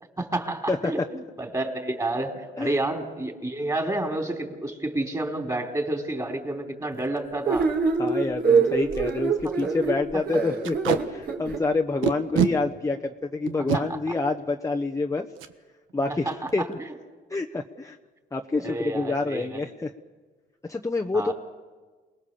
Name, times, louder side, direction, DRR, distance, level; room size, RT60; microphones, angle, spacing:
voice 1, 0.2-7.7 9.4-10.0 13.7-13.8 16.3-16.4 18.6-19.6 21.1-21.3, right 2 dB, 15° right, 2 dB, 4.2 m, -30 dB
Packing tape duct tape, 7.0-7.2 7.6-7.7 7.9-8.1 8.6-8.7 8.9-9.1 9.4-9.6 10.6-11.0 12.0-12.5 13.5-13.8 15.4-15.5 15.9-16.1 16.3-16.7, right 10 dB, 90° right, 1.3 m, -25 dB
sound 1, 7.4-11.6, right 5 dB, 55° right, 4.5 m, -24 dB
voice 2, 8.0-15.3 15.9-16.8 17.3-18.0 18.3-19.9 20.6-21.3, left 3 dB, 15° left, 2 dB, 1.1 m, -27 dB
28.5 x 20.0 x 7.1 m, 1.4 s
cardioid pair, 90°, 20 cm